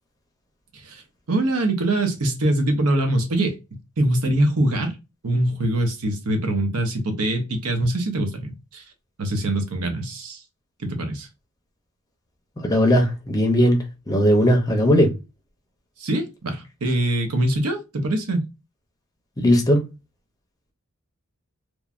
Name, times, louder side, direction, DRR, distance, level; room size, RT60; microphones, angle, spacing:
voice 1, 1.3-3.6 4.0-5.0 5.2-8.8 9.2-10.4 10.8-11.3 16.0-18.4, right 1 dB, 80° right, 0.8 m, -23 dB
voice 2, 12.6-15.1 19.4-19.8, equal, 15° left, 0.5 m, -18 dB
3.1 x 2.2 x 2.4 m
head